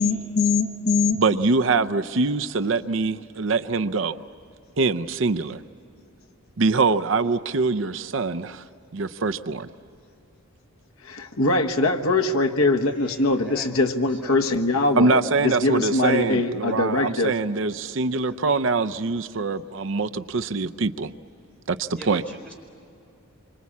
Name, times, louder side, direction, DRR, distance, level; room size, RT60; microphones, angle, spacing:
voice 1, 0.0-1.2 11.0-17.3, left 2 dB, 80° left, 4 dB, 1.3 m, -22 dB
voice 2, 1.2-4.3 4.8-5.6 6.6-8.6 8.9-9.7 14.9-21.1 21.7-22.2, right 3 dB, 60° right, 11 dB, 0.6 m, -24 dB
voice 3, 12.8-14.5 15.9-16.1 16.6-16.7 18.3-18.8 21.9-22.5, right 1 dB, 5° left, -1 dB, 4.7 m, -45 dB
27.0 x 25.0 x 8.5 m, 2.6 s
head